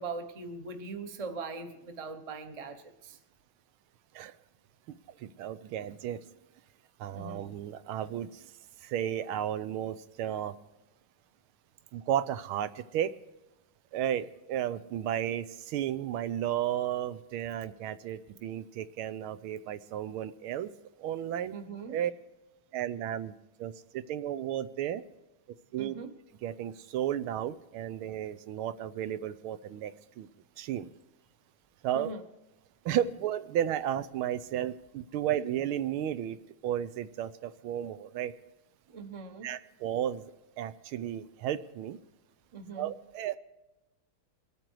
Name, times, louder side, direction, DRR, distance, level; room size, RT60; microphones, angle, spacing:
voice 1, 0.0-3.2 7.1-7.5 21.5-22.0 25.8-26.1 31.9-32.2 38.9-39.6 42.5-42.9, right 4 dB, 30° right, 6 dB, 0.7 m, -41 dB
voice 2, 5.1-6.2 7.0-8.5 8.8-10.6 11.9-13.1 13.9-20.7 21.0-21.6 21.9-22.1 22.7-23.3 23.6-25.0 25.7-25.9 26.4-30.3 30.6-30.9 31.8-32.1 32.8-36.4 36.6-38.3 39.4-42.0 42.7-43.4, right 10 dB, 85° right, 12 dB, 1.5 m, -33 dB
22.5 x 9.0 x 4.7 m, 0.94 s
omnidirectional pair, 2.3 m